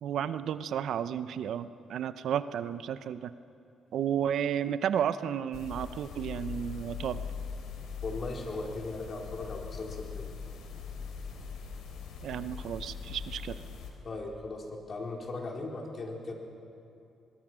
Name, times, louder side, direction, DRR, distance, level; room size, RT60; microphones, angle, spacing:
voice 1, 0.0-3.3 3.9-7.2 12.2-13.6, right 9 dB, 70° right, 13 dB, 0.7 m, -32 dB
sound 1, 5.5-13.9, left 6 dB, 80° left, 3.5 m, -41 dB
voice 2, 8.0-10.3 14.0-16.3, left 3 dB, 45° left, 0 dB, 4.2 m, -38 dB
23.0 x 21.5 x 6.2 m, 2.7 s
cardioid pair, 90°, 0 cm